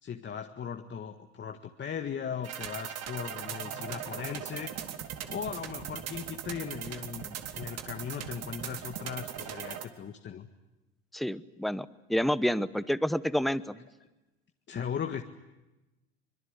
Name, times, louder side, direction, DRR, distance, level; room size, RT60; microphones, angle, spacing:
voice 1, 0.0-4.7 5.3-10.5 14.7-15.2, left 7 dB, 35° left, 5 dB, 1.8 m, -38 dB
sound 1, 2.4-9.9, right 9 dB, 55° right, 2.8 m, -39 dB
voice 2, 11.1-13.8, equal, ahead, 15 dB, 1.0 m, -29 dB
25.0 x 22.5 x 9.8 m, 1.0 s
hypercardioid pair, 85°, 30 cm